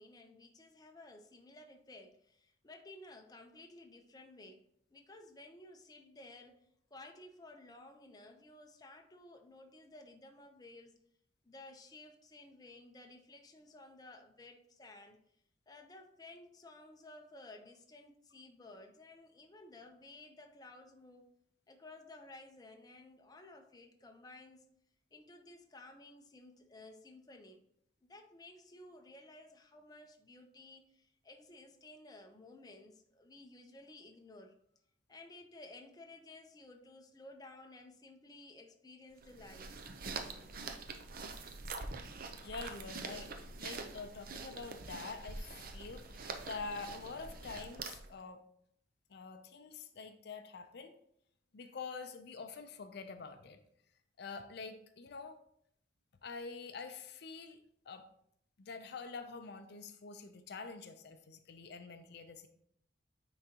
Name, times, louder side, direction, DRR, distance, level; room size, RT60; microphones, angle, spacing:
voice 1, 0.0-10.9 11.4-15.2 15.7-21.3 21.7-24.7 25.1-27.7 28.0-34.6 35.1-39.8, left 2 dB, 20° left, 0.6 m, -55 dB
sound 1, 39.2-48.2, right 4 dB, 50° right, 0.6 m, -45 dB
voice 2, 42.4-48.4 49.1-50.9 51.5-53.6 54.2-55.4 56.2-58.1 58.6-62.5, left 4 dB, 65° left, 0.5 m, -46 dB
9.4 x 3.9 x 2.9 m
head